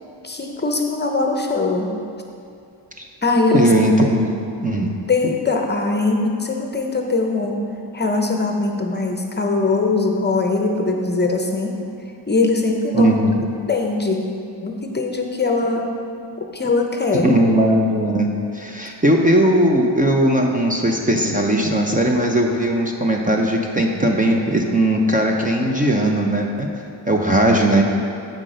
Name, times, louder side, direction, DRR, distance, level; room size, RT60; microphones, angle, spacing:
voice 1, 0.2-1.9 3.2-3.7 5.1-7.6 7.9-11.7 12.3-13.1 13.7-14.2 14.6-15.9 16.4-17.3, left 3 dB, 25° left, 2 dB, 0.7 m, -21 dB
voice 2, 3.5-4.4 4.6-4.9 12.9-13.4 17.2-26.7 27.1-27.8, right 1 dB, 20° right, 1 dB, 0.6 m, -18 dB
7.7 x 5.9 x 5.1 m, 2.5 s
cardioid pair, 105°, 45 cm